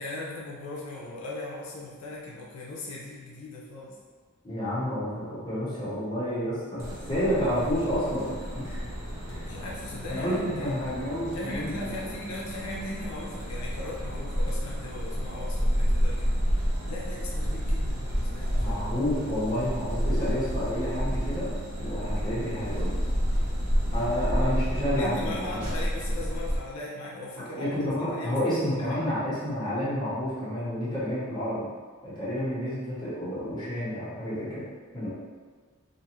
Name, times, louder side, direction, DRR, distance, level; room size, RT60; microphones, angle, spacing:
voice 1, 0.0-4.0 9.4-10.8 11.3-16.3 16.9-18.8 23.8-24.1 25.0-28.8, left 2 dB, 75° left, -4 dB, 0.5 m, -39 dB
voice 2, 4.4-8.8 9.2-9.4 10.1-12.1 18.6-21.5 21.8-23.0 23.9-25.7 27.4-31.7 32.0-34.6 34.9-35.1, equal, 20° left, -11 dB, 1.0 m, -30 dB
sound 1, 6.8-26.6, equal, 85° right, 0.8 m, -30 dB
2.5 x 2.4 x 3.0 m, 1.5 s
head